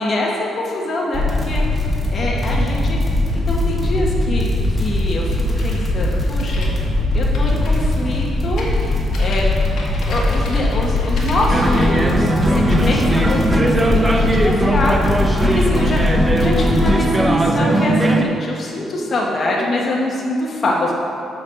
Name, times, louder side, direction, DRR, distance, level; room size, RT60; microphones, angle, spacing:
voice 1, 0.0-1.6 2.1-3.0 3.5-6.7 7.1-8.7 9.2-9.4 10.1-15.0 15.4-21.0, left 1 dB, 45° left, -3 dB, 1.2 m, -24 dB
sound 1, 1.1-16.9, left 2 dB, 10° left, 1.9 m, -20 dB
sound 2, 5.5-11.9, left 2 dB, 65° left, 1.5 m, -34 dB
sound 3, 11.5-18.2, right 1 dB, 15° right, 0.7 m, -18 dB
6.7 x 4.6 x 6.4 m, 2.5 s
cardioid pair, 90°, 0 cm